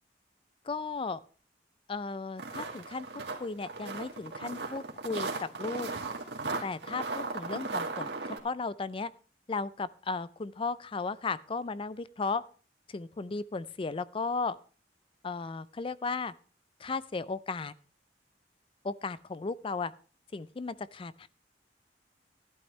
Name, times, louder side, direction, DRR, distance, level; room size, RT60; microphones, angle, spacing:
voice 1, 0.6-1.2 1.9-3.1 3.4-5.9 6.6-8.1 8.4-9.1 9.5-12.4 12.9-14.6 15.2-16.3 16.8-17.7 18.8-19.9 20.3-21.3, left 4 dB, 30° left, 17 dB, 0.4 m, -35 dB
sound 1, 2.4-8.4, right 3 dB, 75° right, 2.1 m, -36 dB
14.0 x 11.5 x 3.2 m, 0.39 s
head